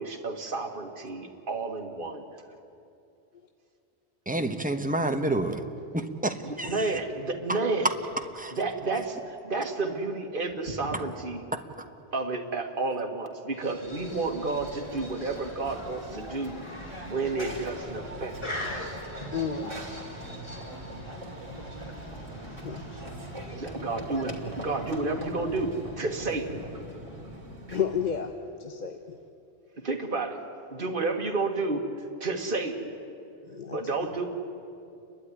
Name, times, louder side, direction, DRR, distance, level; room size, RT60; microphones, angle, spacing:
voice 1, 0.0-2.3 6.4-7.9 8.5-11.4 12.1-16.6 17.0-19.0 23.6-26.6 29.8-30.4 30.7-32.9 33.7-34.3, right 3 dB, 55° right, 2 dB, 1.9 m, -31 dB
voice 2, 4.3-5.6 5.9-6.9 7.5-7.6 8.4-8.5, right 2 dB, 10° right, 6 dB, 1.0 m, -29 dB
sound 1, 13.6-24.0, left 1 dB, 25° left, 2.7 m, -43 dB
Run / Train, 13.8-28.3, right 1 dB, 30° right, 2.8 m, -41 dB
voice 3, 19.3-19.8 22.6-22.8 27.7-28.3 28.6-29.2 33.5-33.8, left 7 dB, 45° left, 5 dB, 1.0 m, -31 dB
30.0 x 12.0 x 9.8 m, 2.7 s
omnidirectional pair, 1.1 m